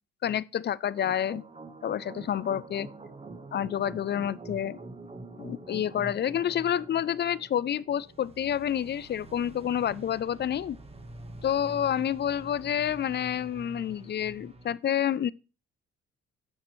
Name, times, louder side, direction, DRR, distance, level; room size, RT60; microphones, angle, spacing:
voice 1, 0.2-1.4 1.8-2.9 3.5-4.8 5.4-10.8 11.4-15.3, left 10 dB, 35° left, 0.4 m, -29 dB
sound 1, 1.0-14.7, right 2 dB, 20° right, 1.3 m, -46 dB
7.4 x 7.2 x 3.1 m
cardioid pair, 90°, 30 cm